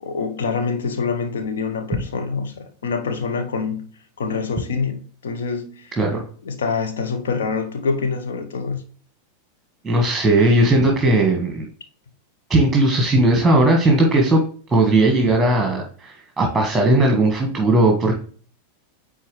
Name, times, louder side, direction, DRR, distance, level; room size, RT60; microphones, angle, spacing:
voice 1, 0.0-3.8 4.2-5.9 6.4-8.8, left 5 dB, 65° left, 1.1 m, -25 dB
voice 2, 9.8-11.7 12.5-14.4 14.7-18.2, right 2 dB, 10° right, 1.5 m, -17 dB
9.3 x 3.8 x 3.3 m
figure-of-eight pair, 90°, 0 cm